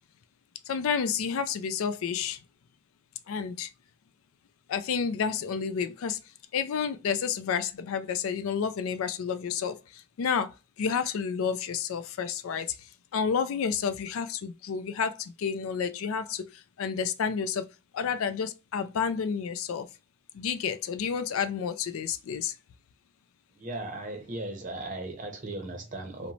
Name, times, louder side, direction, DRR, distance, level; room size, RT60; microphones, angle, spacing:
voice 1, 0.7-2.4 3.3-3.7 4.7-6.2 6.5-10.5 10.8-12.8 13.1-17.7 17.9-19.9 20.3-22.5, left 6 dB, 75° left, 0.4 m, -30 dB
voice 2, 23.6-26.3, right 2 dB, 35° right, 0.6 m, -37 dB
2.9 x 2.1 x 2.6 m
head